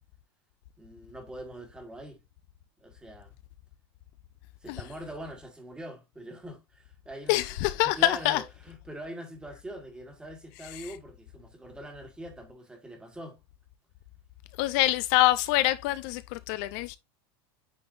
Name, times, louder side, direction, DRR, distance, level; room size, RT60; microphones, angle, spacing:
voice 1, 0.8-2.2 2.8-3.3 4.6-7.4 7.8-13.4, right 1 dB, 5° right, 1.5 m, -43 dB
voice 2, 7.3-8.4 10.7-10.9 14.6-17.0, left 16 dB, 50° left, 0.4 m, -25 dB
9.0 x 4.2 x 2.5 m
supercardioid pair, 165°, 13 cm